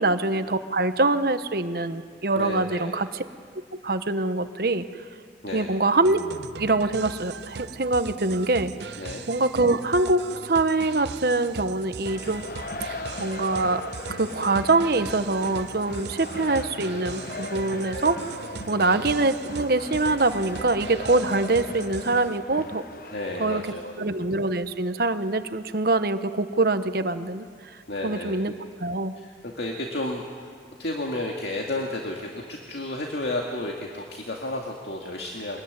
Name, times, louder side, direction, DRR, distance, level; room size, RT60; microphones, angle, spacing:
voice 1, 0.0-3.2 3.8-4.9 5.5-6.2 6.6-8.7 9.3-12.4 12.9-13.8 14.1-18.2 18.7-22.8 23.4-23.6 24.0-27.5 28.0-28.5 28.8-29.1, right 2 dB, 55° right, 10 dB, 1.1 m, -24 dB
voice 2, 2.4-3.0 5.4-5.8 9.0-9.3 18.7-19.0 23.1-23.9 27.9-28.4 29.2-30.5 30.8-35.6, left 1 dB, 70° left, 0 dB, 2.2 m, -32 dB
sound 1, 6.0-22.3, right 5 dB, 75° right, 0.7 m, -39 dB
sound 2, 12.0-23.6, left 2 dB, 55° left, 1.0 m, -38 dB
24.5 x 21.0 x 9.6 m, 2.1 s
head